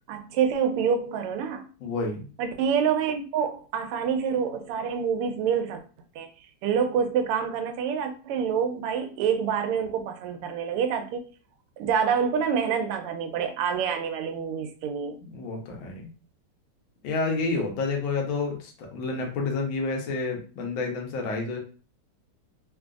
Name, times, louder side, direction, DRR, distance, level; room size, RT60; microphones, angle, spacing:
voice 1, 0.1-1.7 2.4-5.8 6.1-6.3 6.6-11.2 11.8-15.2, right 7 dB, 90° right, 1.5 m, -27 dB
voice 2, 1.8-2.3 15.3-16.1 17.0-21.6, left 3 dB, 70° left, 1.5 m, -29 dB
3.7 x 2.5 x 2.3 m
omnidirectional pair, 2.4 m